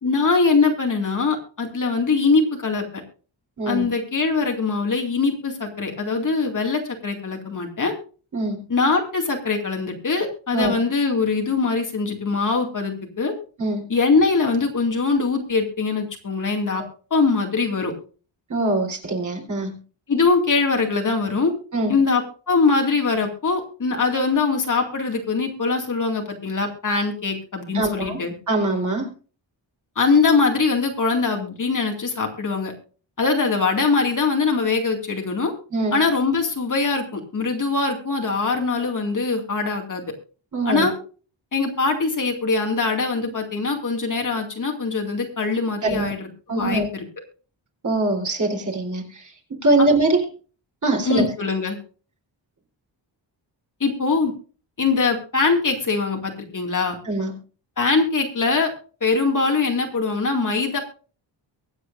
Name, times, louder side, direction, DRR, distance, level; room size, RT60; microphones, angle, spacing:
voice 1, 0.0-2.9 3.7-7.9 8.7-13.3 13.9-16.8 17.1-17.9 20.1-21.5 21.9-28.3 30.0-32.7 33.2-35.5 35.9-40.0 40.7-40.9 41.5-46.2 46.5-47.0 51.0-51.8 53.8-54.3 54.8-57.0 57.8-58.7 59.0-60.8, left 4 dB, 45° left, 2 dB, 2.4 m, -22 dB
voice 2, 18.5-19.7 21.7-22.0 27.7-28.2 28.5-29.1 35.7-36.0 40.5-40.9 45.8-46.1 46.5-46.9 47.8-49.3 49.6-50.2 50.8-51.3 57.0-57.3, right 2 dB, 40° right, 2 dB, 3.8 m, -22 dB
23.5 x 8.3 x 2.6 m, 0.38 s
wide cardioid pair, 180°, 45 cm